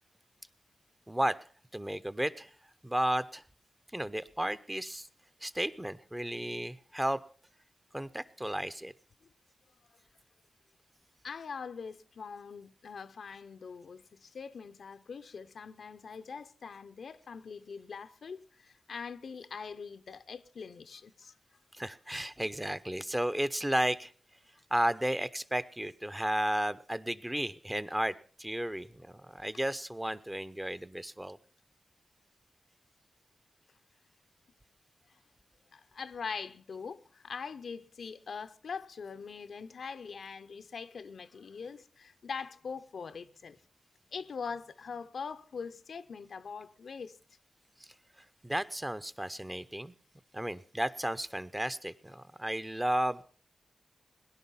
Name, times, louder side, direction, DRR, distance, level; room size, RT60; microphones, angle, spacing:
voice 1, 1.1-1.4 1.7-2.5 2.8-3.4 3.9-5.1 5.4-7.2 7.9-8.9 21.7-24.1 24.7-31.4 47.8-47.9 48.4-49.9 50.3-53.2, right 1 dB, 15° right, 0.7 m, -33 dB
voice 2, 11.2-21.3 35.7-43.6 44.1-47.2, left 5 dB, 80° left, 0.6 m, -43 dB
17.5 x 11.0 x 5.5 m
cardioid pair, 60°, 0 cm